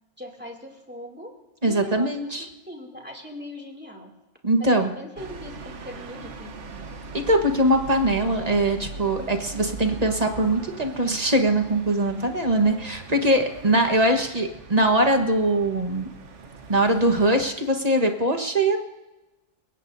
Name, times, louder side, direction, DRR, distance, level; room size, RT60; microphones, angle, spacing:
voice 1, 0.2-1.3 1.6-4.1 4.6-6.9, left 1 dB, 10° right, 1 dB, 2.6 m, -40 dB
voice 2, 1.6-2.5 4.4-4.9 7.1-16.1 16.7-18.8, right 1 dB, 35° right, 4 dB, 1.5 m, -22 dB
sound 1, 5.2-17.4, right 4 dB, 90° right, 1.5 m, -41 dB
29.5 x 16.5 x 2.7 m, 1.0 s
omnidirectional pair, 1.2 m